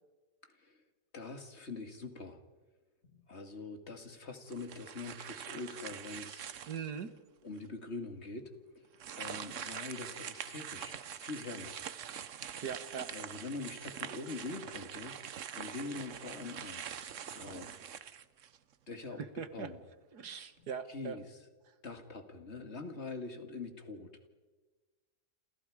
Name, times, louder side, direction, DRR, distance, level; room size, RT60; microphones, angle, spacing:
voice 1, 0.4-0.8 1.1-2.4 3.1-6.7 7.4-8.5 9.1-11.8 13.1-15.1 15.5-17.7 18.9-19.2 19.5-19.8 20.9-21.4 21.8-24.3, left 3 dB, 40° left, 7 dB, 2.4 m, -44 dB
sound 1, 4.5-7.0 7.6-7.7 8.9-18.7, right 8 dB, 55° right, 1.1 m, -44 dB
voice 2, 6.7-7.1 12.6-13.1 19.2-19.7 20.1-21.2, right 7 dB, 75° right, 11 dB, 2.0 m, -40 dB
29.0 x 28.5 x 5.0 m, 1.3 s
omnidirectional pair, 1.8 m